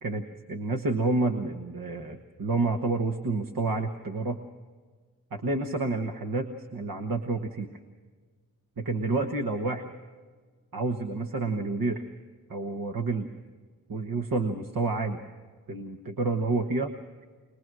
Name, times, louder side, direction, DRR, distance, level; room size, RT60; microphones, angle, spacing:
voice 1, 0.0-4.4 5.3-7.7 8.8-9.9 10.7-12.0 12.5-13.3 13.9-15.2 15.7-16.9, right 3 dB, 90° right, 4 dB, 1.3 m, -29 dB
22.5 x 21.5 x 6.2 m, 1.5 s
cardioid pair, 60°, 33 cm